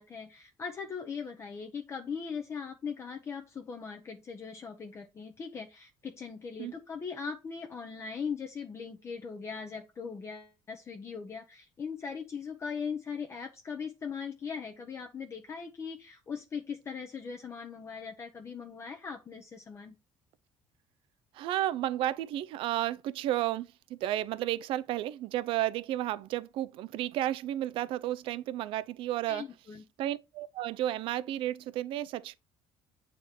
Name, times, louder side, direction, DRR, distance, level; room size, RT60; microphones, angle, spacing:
voice 1, 0.0-19.9 29.3-29.8, left 6 dB, 30° left, 0.9 m, -40 dB
voice 2, 21.3-29.5 30.0-32.4, right 13 dB, 65° right, 0.5 m, -32 dB
8.3 x 4.2 x 4.4 m
cardioid pair, 150°, 10 cm